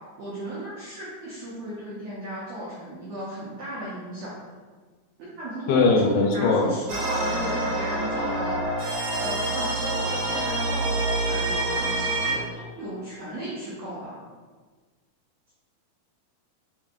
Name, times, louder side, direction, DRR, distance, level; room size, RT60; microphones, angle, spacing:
voice 1, 0.2-4.4 5.2-6.0 6.3-8.7 9.2-14.2, right 1 dB, 85° right, -8 dB, 1.5 m, -35 dB
voice 2, 5.7-6.7, left 3 dB, 80° left, 2 dB, 2.3 m, -20 dB
sound 1, 6.9-12.3, right 1 dB, 70° right, 2.0 m, -27 dB
6.8 x 2.7 x 2.5 m, 1.4 s
omnidirectional pair, 4.3 m